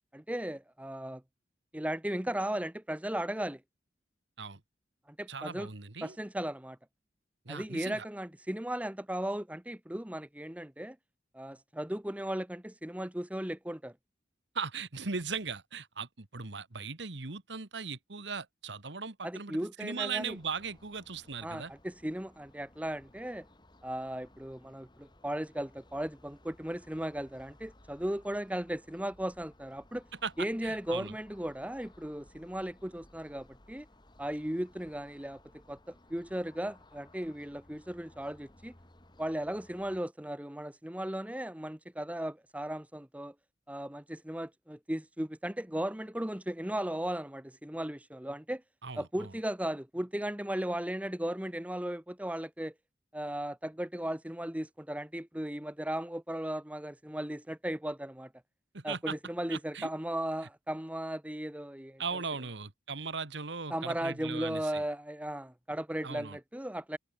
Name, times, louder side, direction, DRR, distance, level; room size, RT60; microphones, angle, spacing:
voice 1, 0.1-1.2 1.7-3.6 5.1-5.7 6.0-6.8 7.5-11.0 11.3-13.9 19.2-20.4 21.4-23.4 23.8-30.0 30.4-33.9 34.2-35.4 35.7-38.7 39.2-43.3 43.7-48.6 48.9-52.7 53.1-58.3 58.8-62.0 63.7-67.0, right 1 dB, 10° right, 1.1 m, -36 dB
voice 2, 5.3-6.2 7.4-8.0 14.5-21.7 30.2-31.1 48.8-49.3 58.7-59.1 59.5-59.9 62.0-64.8 66.0-66.4, right 5 dB, 75° right, 1.7 m, -38 dB
sound 1, 20.2-40.0, left 1 dB, 25° left, 4.0 m, -60 dB
head